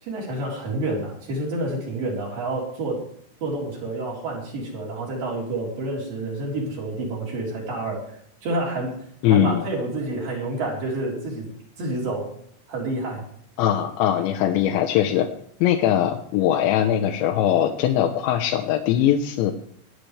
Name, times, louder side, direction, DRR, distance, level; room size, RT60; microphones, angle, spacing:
voice 1, 0.0-3.0 3.4-8.0 8.4-9.0 9.3-11.5 11.8-12.3 12.7-13.2, right 2 dB, 50° right, -3 dB, 5.2 m, -28 dB
voice 2, 9.2-9.6 13.6-15.3 15.6-19.5, left 10 dB, 80° left, 3 dB, 3.0 m, -21 dB
24.0 x 9.0 x 3.3 m, 0.67 s
omnidirectional pair, 5.5 m